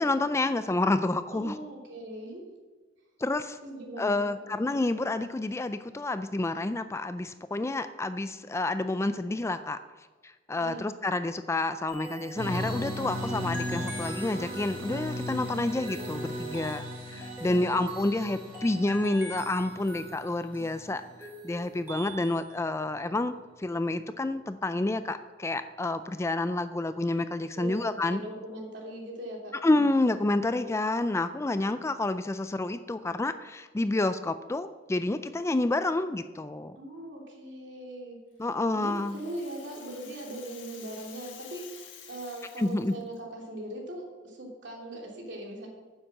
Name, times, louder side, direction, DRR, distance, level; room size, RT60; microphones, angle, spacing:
voice 1, 0.0-1.6 3.2-3.6 4.0-9.8 10.2-16.8 17.1-28.2 29.6-36.8 38.4-39.2 42.6-42.9, left 2 dB, 15° left, 11 dB, 0.3 m, -29 dB
voice 2, 1.3-2.4 3.6-4.2 10.6-10.9 17.4-17.7 27.5-29.5 36.8-38.2 38.7-45.7, right 1 dB, 65° right, -1 dB, 3.0 m, -40 dB
sound 1, 11.9-22.5, right 1 dB, 10° right, 3.3 m, -44 dB
sound 2, 12.3-21.1, equal, 50° right, 2.6 m, -37 dB
Rattle (instrument), 38.4-43.2, left 8 dB, 85° left, 1.7 m, -50 dB
9.9 x 7.3 x 7.5 m, 1.3 s
head